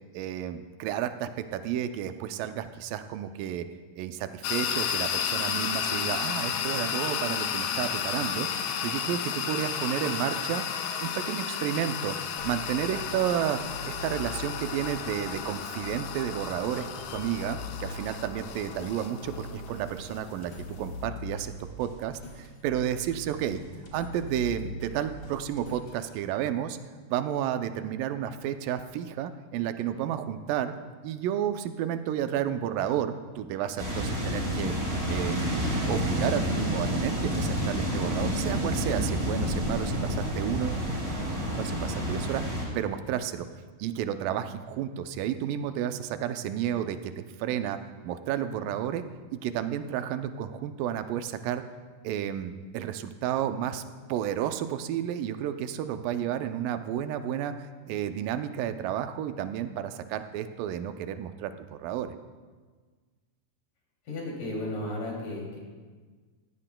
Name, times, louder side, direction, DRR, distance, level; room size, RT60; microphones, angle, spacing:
voice 1, 0.1-3.7 4.0-8.5 8.8-10.7 11.0-21.5 21.8-23.6 23.9-26.8 27.1-30.7 31.0-34.8 35.1-40.9 41.6-43.5 43.8-47.8 48.0-49.0 49.3-51.6 52.0-53.8 54.1-62.2, right 10 dB, 80° right, 9 dB, 2.2 m, -31 dB
sound 1, 4.4-21.0, left 8 dB, 90° left, 2.5 m, -33 dB
sound 2, 12.4-26.1, left 1 dB, 45° left, 2.4 m, -42 dB
sound 3, 33.8-42.6, equal, 20° right, 2.7 m, -29 dB
voice 2, 64.1-65.6, left 1 dB, 65° left, -3 dB, 4.3 m, -34 dB
17.5 x 15.0 x 2.2 m, 1.4 s
omnidirectional pair, 4.1 m